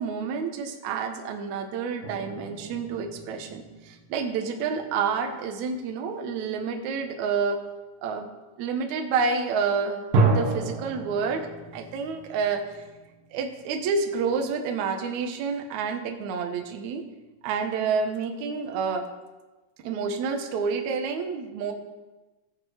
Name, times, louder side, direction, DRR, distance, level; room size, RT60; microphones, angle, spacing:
voice 1, 0.0-7.6 8.0-8.3 8.6-11.5 11.7-12.8 13.3-17.0 17.4-19.0 19.8-21.7, right 5 dB, 80° right, 4 dB, 1.7 m, -29 dB
sound 1, 2.0-5.0 5.5-5.9 10.1-14.5, right 3 dB, 60° right, 2.8 m, -30 dB
15.5 x 7.8 x 4.9 m, 1.2 s
omnidirectional pair, 5.0 m